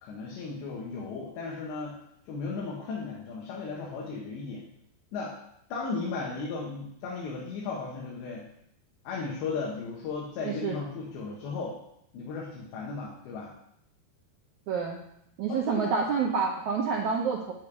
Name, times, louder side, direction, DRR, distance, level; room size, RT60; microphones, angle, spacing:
voice 1, 0.0-2.0 2.3-4.6 5.1-5.4 5.7-8.5 9.1-11.8 12.1-13.5 15.5-15.9, left 4 dB, 80° left, -3 dB, 3.7 m, -35 dB
voice 2, 10.4-10.8 14.7-15.0 15.4-17.5, right 5 dB, 90° right, -2 dB, 1.6 m, -28 dB
9.2 x 5.4 x 8.1 m, 0.76 s
omnidirectional pair, 5.0 m